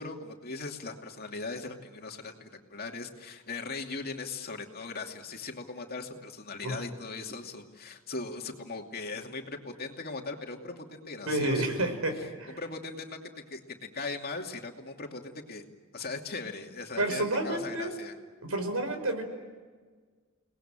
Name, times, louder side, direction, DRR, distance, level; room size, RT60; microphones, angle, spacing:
voice 1, 0.0-12.3 12.6-15.6 15.9-18.1, left 3 dB, 45° left, 3 dB, 2.6 m, -39 dB
voice 2, 11.3-12.6 17.0-17.9 18.4-19.2, right 1 dB, 90° right, 7 dB, 5.2 m, -30 dB
30.0 x 20.0 x 8.9 m, 1.5 s
head